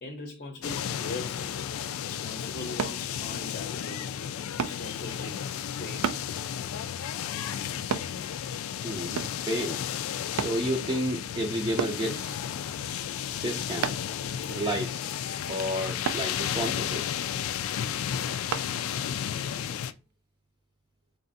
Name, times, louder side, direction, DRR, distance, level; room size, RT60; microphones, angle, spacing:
voice 1, 0.0-1.7 2.0-4.2 4.6-6.2, left 2 dB, 40° left, 0.7 m, -41 dB
sound 1, 0.6-19.9, left 9 dB, 70° left, 0.3 m, -33 dB
sound 2, 2.8-3.0 4.6-4.8 6.0-6.3 7.9-8.1 9.2-9.4 10.4-10.6 11.8-12.0 13.8-14.1 16.0-16.3 18.5-18.7 19.3-19.4, right 7 dB, 90° right, 0.4 m, -30 dB
voice 2, 8.8-9.8 10.3-12.4 13.4-13.9 14.5-15.1 15.5-17.0 18.4-18.6 18.9-19.0 19.5-19.6, right 1 dB, 20° right, 0.5 m, -31 dB
3.3 x 2.5 x 4.0 m
head